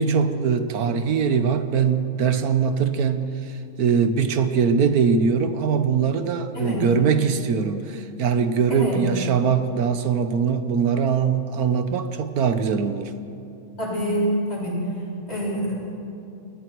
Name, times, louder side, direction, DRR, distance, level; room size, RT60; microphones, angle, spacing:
voice 1, 0.0-3.3 3.8-13.1, right 6 dB, 85° right, 9 dB, 1.5 m, -22 dB
voice 2, 8.7-9.0 13.8-14.8 15.3-15.7, equal, 45° left, -5 dB, 7.4 m, -26 dB
29.5 x 20.5 x 4.6 m, 2.7 s
omnidirectional pair, 1.5 m